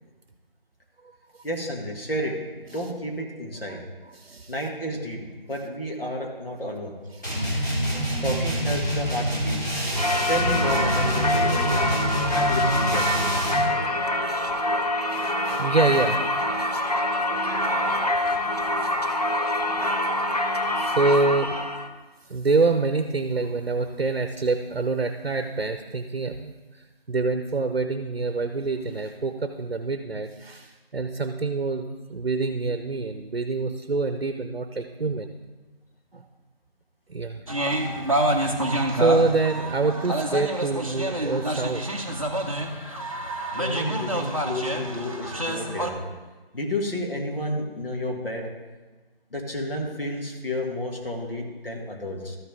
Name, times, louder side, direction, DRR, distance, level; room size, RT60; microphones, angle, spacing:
voice 1, 1.4-2.4 2.7-3.8 4.5-5.2 5.5-6.9 8.2-9.6 10.3-11.9 12.3-13.3 43.5-46.0 46.5-48.5 49.3-52.4, left 1 dB, 70° left, 0 dB, 2.2 m, -31 dB
voice 2, 4.1-4.5 7.2-8.1 15.1-16.2 20.8-21.5 22.3-35.3 36.1-36.2 37.1-37.4 38.9-41.8 45.4-45.7, right 3 dB, 70° right, 8 dB, 0.7 m, -26 dB
sound 1, 7.2-13.7, equal, 20° left, 1.5 m, -26 dB
Singing / Church bell, 10.0-21.9, left 1 dB, 40° left, 0.6 m, -25 dB
sound 2, 37.5-45.9, right 1 dB, 35° right, 0.7 m, -27 dB
13.0 x 5.6 x 3.6 m, 1.3 s
figure-of-eight pair, 175°, 30 cm